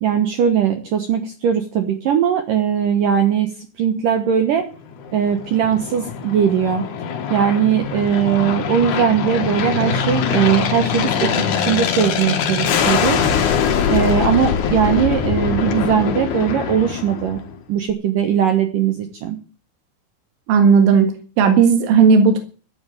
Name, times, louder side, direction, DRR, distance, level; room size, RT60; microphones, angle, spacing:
voice 1, 0.0-3.5 3.8-4.7 5.1-6.8 7.3-13.2 13.9-17.4 17.7-19.4, right 8 dB, 65° right, 6 dB, 2.2 m, -19 dB
Aircraft, 4.9-17.6, left 7 dB, 60° left, 2.2 m, -22 dB
voice 2, 20.5-21.1 21.4-22.4, right 6 dB, 90° right, 6 dB, 4.2 m, -13 dB
13.5 x 8.8 x 8.6 m, 0.38 s
omnidirectional pair, 5.4 m